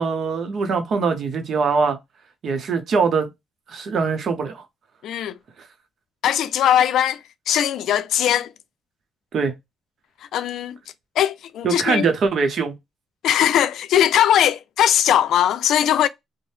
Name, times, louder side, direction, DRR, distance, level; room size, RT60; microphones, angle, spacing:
voice 1, 0.0-2.0 2.4-3.3 3.7-4.6 9.3-9.5 11.6-12.7, right 5 dB, 60° right, 0.7 m, -22 dB
voice 2, 5.0-5.4 6.2-7.2 7.5-8.5 10.3-10.7 11.2-12.1 13.2-16.1, left 10 dB, 75° left, 0.3 m, -19 dB
2.7 x 2.0 x 3.2 m
cardioid pair, 90°, 0 cm